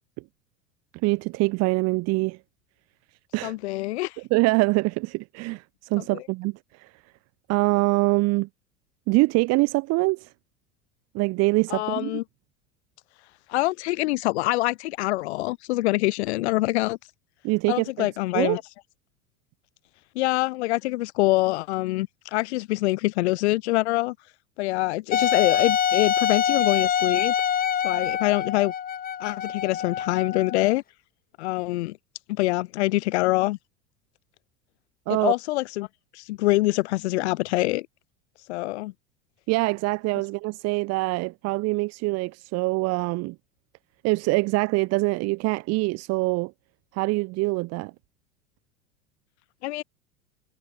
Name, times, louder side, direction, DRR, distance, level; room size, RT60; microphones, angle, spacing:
voice 1, 1.0-2.4 3.3-3.5 4.3-6.9 7.5-8.5 9.1-10.3 11.1-12.2 17.4-18.1 18.3-18.6 35.1-35.3 39.5-43.4 44.0-46.5 46.9-47.9, right 24 dB, 45° right, 0.9 m, -24 dB
voice 2, 3.4-4.2 6.1-6.2 11.7-12.2 13.5-17.0 17.7-18.6 20.1-24.1 24.6-27.3 27.8-28.7 29.2-30.8 31.4-32.0 32.3-33.6 35.2-35.9 36.1-37.9 38.5-38.9 49.6-49.8, left 19 dB, 65° left, 1.5 m, -25 dB
Wind instrument woodwind instrument, 25.1-30.7, left 9 dB, 25° left, 1.2 m, -25 dB
hypercardioid pair, 85°, 36 cm